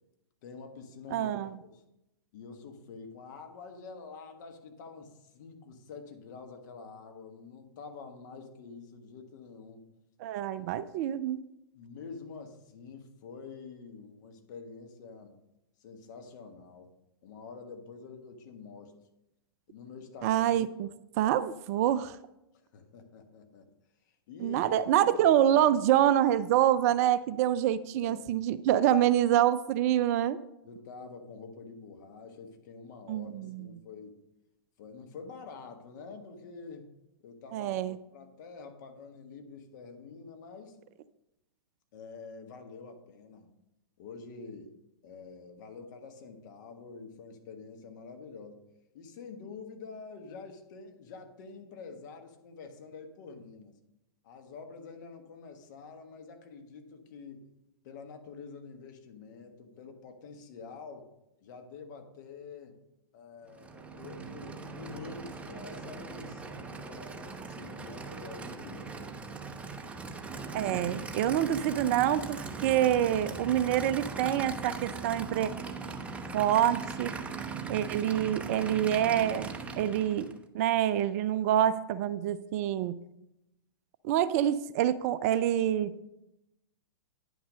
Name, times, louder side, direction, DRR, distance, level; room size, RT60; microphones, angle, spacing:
voice 1, 0.4-1.3 1.6-1.8 2.3-9.9 11.7-15.4 15.8-16.9 17.2-18.9 19.7-20.4 22.5-23.7 24.3-25.1 28.0-28.2 30.6-34.2 34.8-36.9 37.2-37.8 38.1-40.8 41.9-43.5 44.0-44.7 45.0-48.6 48.9-53.8 54.2-57.5 57.8-61.1 61.4-62.8 63.1-69.2, left 5 dB, 50° left, 5 dB, 1.4 m, -47 dB
voice 2, 1.1-1.5 10.2-11.4 20.2-20.9 21.2-22.2 24.4-30.4 33.1-33.7 37.5-38.0 70.5-75.5 76.3-77.1 77.7-79.5 79.8-80.3 80.5-83.0 84.0-86.0, right 11 dB, 40° right, 16 dB, 0.4 m, -26 dB
Aircraft / Idling, 63.5-80.4, right 4 dB, 10° right, 0.7 m, -40 dB
9.7 x 6.0 x 5.1 m, 0.89 s
figure-of-eight pair, 110°, 13 cm